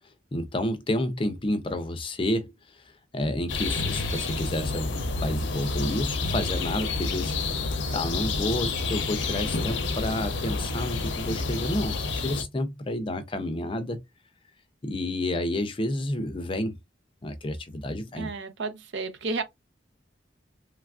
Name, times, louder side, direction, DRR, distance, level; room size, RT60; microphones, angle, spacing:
voice 1, 0.3-7.4 7.9-14.0 14.8-16.8 17.2-18.3, left 1 dB, 30° left, 0.4 m, -30 dB
sound 1, 3.5-12.4, left 3 dB, 75° left, 0.6 m, -29 dB
voice 2, 18.2-19.4, right 3 dB, 70° right, 0.6 m, -32 dB
3.2 x 2.4 x 2.3 m
head